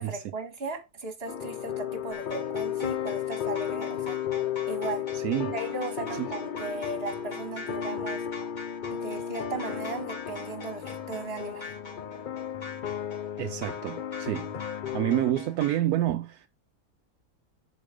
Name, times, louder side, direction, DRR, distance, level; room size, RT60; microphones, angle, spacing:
voice 1, 0.0-4.2 4.7-5.0 5.5-8.2 8.9-11.7, right 3 dB, 40° right, 2.0 m, -36 dB
sound 1, 1.3-15.3, left 9 dB, 65° left, 0.5 m, -34 dB
sound 2, 2.1-15.8, left 3 dB, 30° left, 2.6 m, -44 dB
voice 2, 5.1-5.6 6.1-6.3 13.4-14.5 14.9-16.5, right 13 dB, 80° right, 1.1 m, -28 dB
9.9 x 5.0 x 5.1 m
omnidirectional pair, 1.6 m